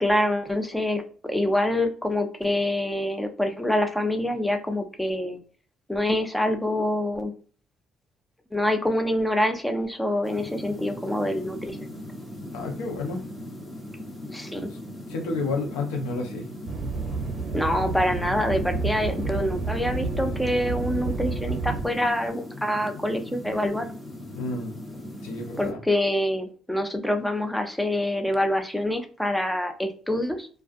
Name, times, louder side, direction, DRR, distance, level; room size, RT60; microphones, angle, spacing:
voice 1, 0.0-5.4 5.9-7.3 8.5-11.9 14.3-14.7 17.5-23.9 25.6-30.5, left 1 dB, 5° left, 6 dB, 0.6 m, -26 dB
sound 1, 10.2-25.7, left 1 dB, 25° left, 1.1 m, -39 dB
voice 2, 12.5-13.2 15.1-16.5 24.3-24.8 25.2-25.8, left 3 dB, 85° left, 2 dB, 0.6 m, -30 dB
sound 2, 16.7-21.8, right 4 dB, 55° right, 0.6 m, -30 dB
2.3 x 2.3 x 2.5 m, 0.41 s
supercardioid pair, 60°, 0 cm